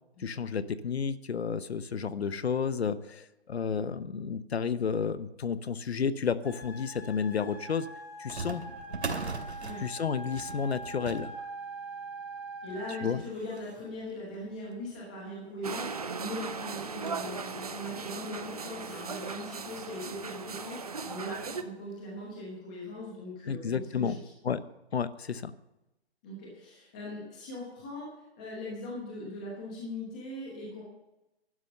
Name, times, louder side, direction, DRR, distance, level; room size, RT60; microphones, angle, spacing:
voice 1, 0.2-7.9 8.2-8.6 9.8-11.3 13.0-13.2 23.5-24.1 24.4-24.6 24.9-25.5, left 6 dB, 70° left, 15 dB, 0.9 m, -31 dB
sound 1, 6.4-13.1, right 2 dB, 10° right, 1.6 m, -43 dB
sound 2, 8.3-15.2 15.8-15.9 16.1-16.2 16.6-17.4 17.9-18.0 18.8-18.9 19.3-19.4 20.8-21.0 21.4-21.5 22.2-22.3, right 4 dB, 80° right, 2.5 m, -42 dB
voice 2, 12.6-24.3 26.2-30.8, left 1 dB, 5° left, -4 dB, 0.9 m, -40 dB
sound 3, 15.6-21.6, right 5 dB, 35° right, 0.7 m, -38 dB
11.5 x 11.0 x 6.6 m, 0.96 s
hypercardioid pair, 180°, 33 cm